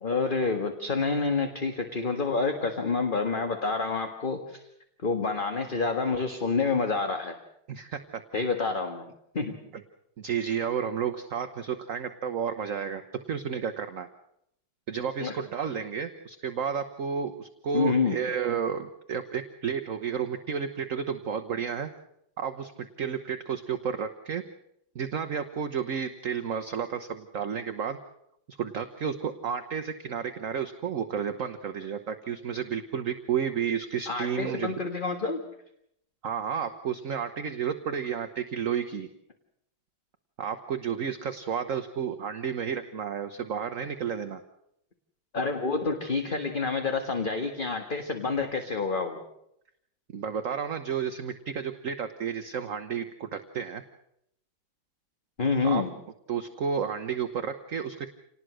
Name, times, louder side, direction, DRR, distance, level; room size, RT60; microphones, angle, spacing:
voice 1, 0.0-4.7 5.0-7.4 8.3-9.1 9.3-9.6 15.2-15.4 17.7-18.2 34.1-35.4 45.3-49.2 55.4-55.9, left 4 dB, 30° left, 5 dB, 1.7 m, -28 dB
voice 2, 7.7-8.2 10.2-13.0 13.3-14.1 14.9-21.9 22.4-24.4 24.9-28.0 28.5-34.7 36.2-39.1 40.4-44.4 50.1-53.8 55.6-55.8 56.3-58.1, right 7 dB, 50° right, 8 dB, 1.3 m, -31 dB
27.5 x 19.5 x 6.3 m, 0.76 s
omnidirectional pair, 2.0 m